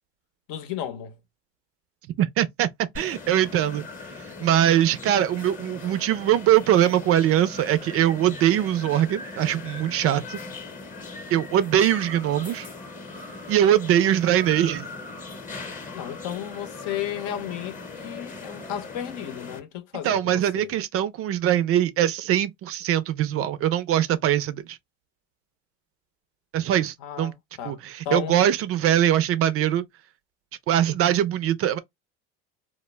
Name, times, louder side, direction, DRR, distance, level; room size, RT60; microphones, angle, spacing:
voice 1, 0.5-1.2 15.9-20.7 27.0-27.8 28.0-28.3, left 10 dB, 65° left, 0.8 m, -33 dB
voice 2, 2.2-2.7 3.0-3.8 4.4-10.4 11.3-12.7 13.5-14.9 20.0-24.8 26.5-27.3 27.6-29.8 30.7-31.8, right 11 dB, 45° right, 0.4 m, -22 dB
sound 1, 3.0-19.6, left 3 dB, 25° left, 0.8 m, -39 dB
2.1 x 2.1 x 3.1 m
supercardioid pair, 100°, 33 cm